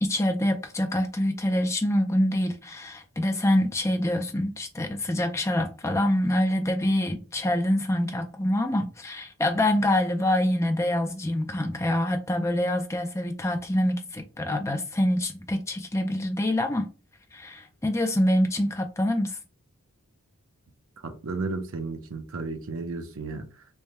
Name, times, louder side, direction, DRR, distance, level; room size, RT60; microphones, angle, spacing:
voice 1, 0.0-16.9 17.3-19.4, left 1 dB, 15° left, 0.5 m, -25 dB
voice 2, 21.0-23.5, right 3 dB, 70° right, 0.7 m, -33 dB
3.4 x 2.2 x 4.2 m
head